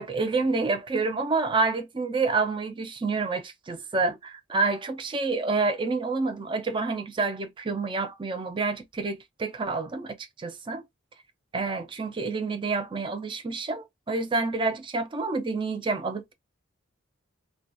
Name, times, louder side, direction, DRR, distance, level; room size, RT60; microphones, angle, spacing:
voice 1, 0.0-10.8 11.5-16.3, right 3 dB, 25° right, 0.4 m, -28 dB
2.3 x 2.2 x 2.5 m
head